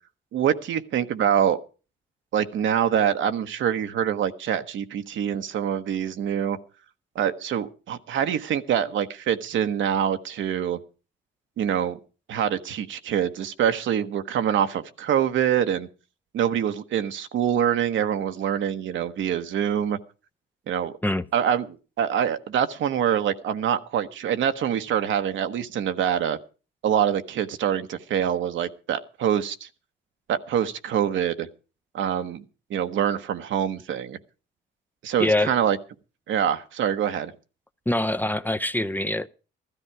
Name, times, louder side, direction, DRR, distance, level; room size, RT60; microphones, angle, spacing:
voice 1, 0.3-1.6 2.3-6.6 7.1-10.8 11.6-12.0 12.3-15.9 16.3-20.0 20.7-20.9 21.3-26.4 26.8-29.7 30.3-31.5 31.9-32.4 32.7-34.2 35.0-35.8 36.3-37.3, right 9 dB, 75° right, 1.2 m, -25 dB
voice 2, 35.2-35.5 37.9-39.3, left 1 dB, 10° left, 0.6 m, -24 dB
15.0 x 13.5 x 4.7 m
cardioid pair, 90°, 20 cm